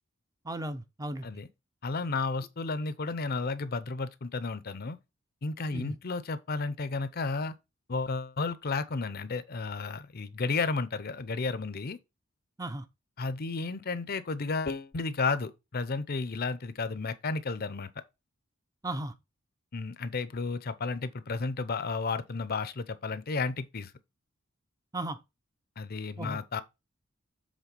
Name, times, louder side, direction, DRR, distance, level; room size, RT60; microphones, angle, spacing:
voice 1, 0.4-1.3 5.7-6.0 12.6-12.8 18.8-19.1 24.9-25.2 26.2-26.4, right 1 dB, 15° right, 0.6 m, -35 dB
voice 2, 1.8-5.0 5.4-7.5 7.9-12.0 13.2-17.9 19.7-23.9 25.8-26.6, left 4 dB, 45° left, 0.6 m, -32 dB
7.4 x 3.7 x 5.2 m
head